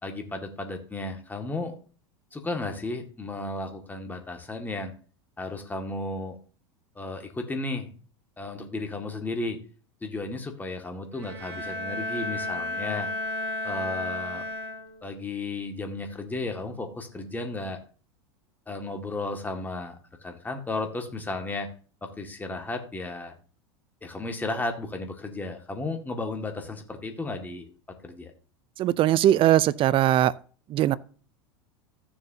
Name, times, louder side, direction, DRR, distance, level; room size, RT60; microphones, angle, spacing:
voice 1, 0.0-1.8 2.3-4.9 5.4-6.4 7.0-7.9 8.4-9.6 10.0-13.1 13.6-14.5 15.0-17.8 18.7-21.7 22.0-23.3 24.0-27.7 28.0-28.3, left 2 dB, 10° left, 2.0 m, -34 dB
Bowed string instrument, 11.1-15.2, left 2 dB, 75° right, 2.3 m, -33 dB
voice 2, 28.8-30.3 30.7-31.0, right 12 dB, 40° right, 0.5 m, -20 dB
14.5 x 6.9 x 2.8 m
hypercardioid pair, 100°, 14 cm